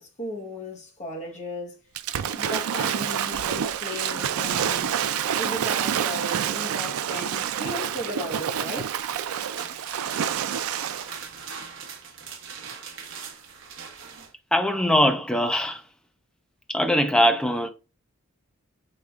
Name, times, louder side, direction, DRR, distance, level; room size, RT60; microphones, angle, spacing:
voice 1, 0.0-1.8 2.3-5.0 5.3-9.0, left 1 dB, 35° left, 1.0 m, -36 dB
Waves surf / Splash splatter, 2.0-11.2, right 9 dB, 80° right, 0.4 m, -28 dB
sound 1, 9.0-14.3, right 6 dB, 60° right, 0.9 m, -41 dB
voice 2, 14.5-15.8 16.7-17.7, equal, 5° left, 0.5 m, -21 dB
5.0 x 3.3 x 2.4 m
head